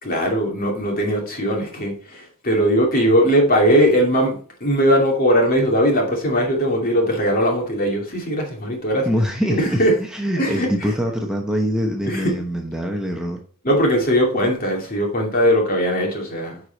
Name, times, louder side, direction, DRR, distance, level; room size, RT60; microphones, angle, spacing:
voice 1, 0.0-4.4 4.6-9.1 9.6-9.9 10.4-10.7 12.0-12.3 13.6-16.6, equal, 45° left, 0 dB, 2.5 m, -19 dB
voice 2, 9.0-13.4, equal, 5° right, 1 dB, 0.9 m, -24 dB
9.6 x 4.9 x 4.0 m, 0.41 s
head